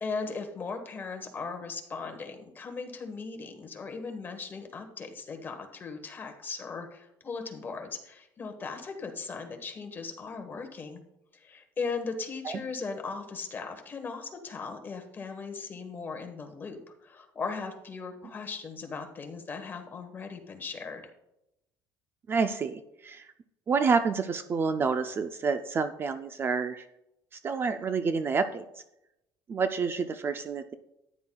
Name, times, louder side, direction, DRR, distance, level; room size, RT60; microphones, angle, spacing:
voice 1, 0.0-11.0 11.3-21.1, left 4 dB, 25° left, 4 dB, 1.2 m, -38 dB
voice 2, 22.3-23.3 23.7-26.9 27.4-28.6 29.5-30.7, right 5 dB, 25° right, 9 dB, 0.4 m, -28 dB
14.0 x 10.0 x 2.3 m, 0.87 s
cardioid pair, 155°, 8 cm